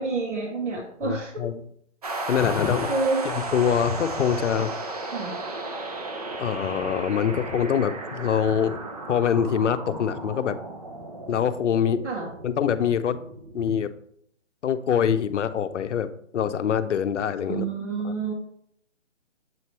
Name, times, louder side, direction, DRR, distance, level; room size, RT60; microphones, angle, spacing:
voice 1, 0.0-1.4 2.7-3.2 5.1-5.3 7.2-7.3 12.0-12.3 17.5-18.3, right 3 dB, 70° right, -1 dB, 1.9 m, -28 dB
voice 2, 1.0-1.6 2.3-2.9 3.2-4.7 6.4-8.8 9.1-10.6 11.3-12.0 12.4-13.2 13.5-13.9 14.6-17.7 18.0-18.1, left 8 dB, 70° left, 11 dB, 0.7 m, -24 dB
sound 1, 2.0-13.6, right 2 dB, 30° right, 0.6 m, -35 dB
7.7 x 4.5 x 3.0 m, 0.69 s
hypercardioid pair, 165°, 37 cm